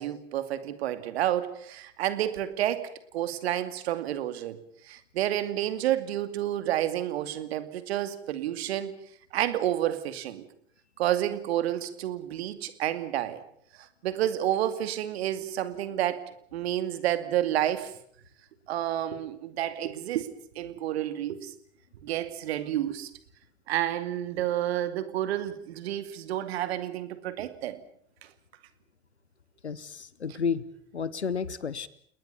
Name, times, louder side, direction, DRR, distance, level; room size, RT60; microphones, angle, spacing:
voice 1, 0.0-4.6 4.8-8.9 9.3-10.4 11.0-13.4 13.8-16.2 16.5-17.9 18.7-20.3 20.5-21.5 22.0-23.1 23.7-27.8, right 12 dB, 70° right, 12 dB, 2.5 m, -30 dB
voice 2, 29.6-30.6 30.9-31.9, left 6 dB, 90° left, 19 dB, 1.0 m, -31 dB
29.5 x 20.0 x 7.0 m, 0.63 s
figure-of-eight pair, 70°, 33 cm